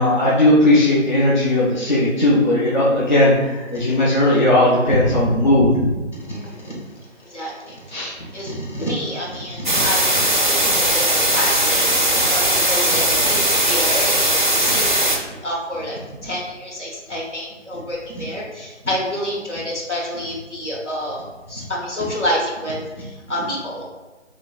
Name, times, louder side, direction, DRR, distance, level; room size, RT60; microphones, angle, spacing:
voice 1, 0.0-5.7 7.9-8.1, left 1 dB, 40° left, -7 dB, 0.5 m, -17 dB
voice 2, 6.2-6.8 7.2-23.8, equal, 70° left, -4 dB, 1.3 m, -28 dB
sound 1, 9.6-15.2, right 1 dB, 40° right, 0.4 m, -18 dB
4.2 x 2.9 x 2.3 m, 1.2 s
figure-of-eight pair, 160°, 38 cm